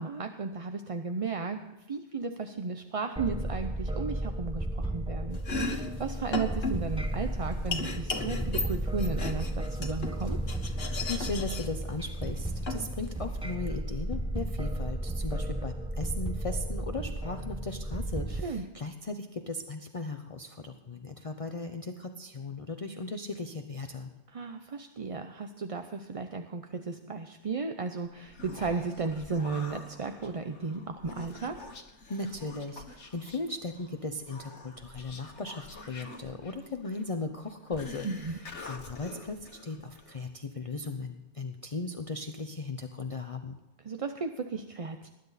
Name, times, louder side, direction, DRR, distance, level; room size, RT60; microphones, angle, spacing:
voice 1, 0.0-1.6 1.9-10.4 18.3-18.6 24.3-31.6 38.0-38.4 43.8-45.1, right 4 dB, 35° right, 7 dB, 0.6 m, -34 dB
sound 1, 3.2-18.4, right 1 dB, 5° right, 0.9 m, -34 dB
Domestic sounds home sounds, 5.3-13.5, left 3 dB, 60° left, 1.7 m, -37 dB
voice 2, 11.1-24.1 32.1-43.6, left 3 dB, 35° left, 5 dB, 0.8 m, -37 dB
Human voice, 28.1-40.3, left 3 dB, 90° left, 1.8 m, -47 dB
19.5 x 10.5 x 4.1 m, 1.1 s
omnidirectional pair, 1.2 m